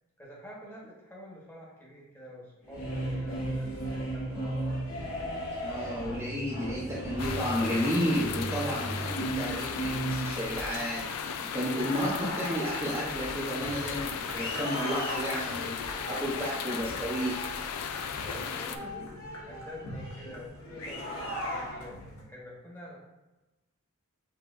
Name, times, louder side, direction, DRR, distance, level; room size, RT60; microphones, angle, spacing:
voice 1, 0.2-4.8 18.2-23.0, left 1 dB, 10° left, -5 dB, 1.0 m, -47 dB
sound 1, 2.6-22.2, equal, 65° left, 1.1 m, -37 dB
voice 2, 5.6-11.1 11.5-15.8 16.1-17.4, equal, 15° right, -7 dB, 0.6 m, -32 dB
sound 2, 7.2-18.8, left 7 dB, 90° left, 0.4 m, -36 dB
5.7 x 2.8 x 2.5 m, 1.1 s
head